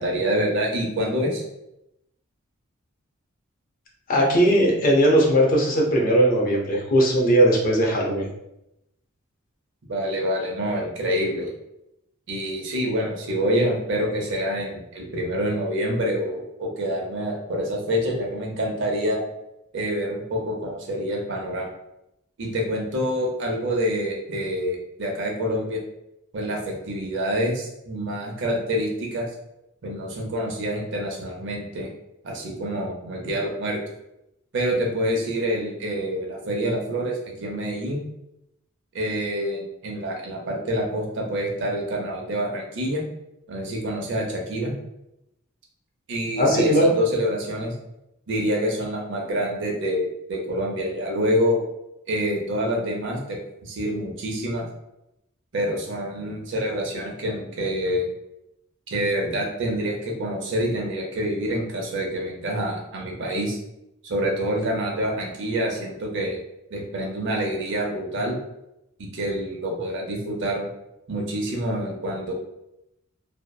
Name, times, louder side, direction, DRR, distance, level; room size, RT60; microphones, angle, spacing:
voice 1, 0.0-1.4 9.9-11.5 12.3-19.2 19.7-21.7 22.4-25.8 26.3-29.2 29.8-31.9 32.2-33.8 34.5-38.1 38.9-43.0 43.5-44.7 46.1-47.7 48.3-51.6 52.1-54.7 55.5-58.1 58.9-63.6 64.0-66.4 66.7-68.4 69.0-70.7 71.1-72.3, equal, 60° right, 0 dB, 0.6 m, -26 dB
voice 2, 4.1-8.3 46.4-46.9, right 1 dB, 45° left, -1 dB, 0.5 m, -19 dB
2.7 x 2.0 x 2.2 m, 0.85 s
head